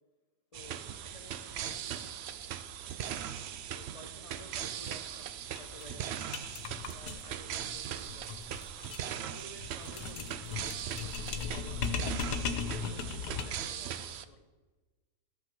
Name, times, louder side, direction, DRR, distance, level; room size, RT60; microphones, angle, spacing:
voice 1, 0.5-2.1 3.7-5.3 5.6-6.1 6.9-8.3 9.1-14.5, left 1 dB, 30° left, 7 dB, 0.7 m, -53 dB
sound 1, 0.5-14.2, right 9 dB, 75° right, 0.6 m, -40 dB
sound 2, 4.8-4.9 5.2-5.3 5.6-13.7, left 6 dB, 85° left, 1.5 m, -38 dB
13.5 x 6.3 x 6.0 m, 1.2 s
omnidirectional pair, 1.7 m